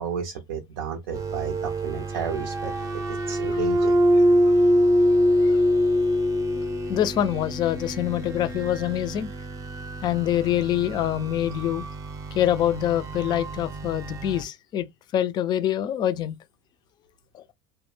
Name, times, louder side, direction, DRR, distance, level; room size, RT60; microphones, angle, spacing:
voice 1, 0.0-2.7 3.1-4.0, right 7 dB, 80° right, 0.5 m, -32 dB
sound 1, 1.1-14.4, equal, 25° right, 0.6 m, -25 dB
voice 2, 6.9-9.3 10.0-11.9 12.3-14.9 15.1-16.4 17.3-17.5, left 11 dB, 35° left, 0.3 m, -25 dB
2.1 x 2.0 x 3.1 m
hypercardioid pair, 100°, 12 cm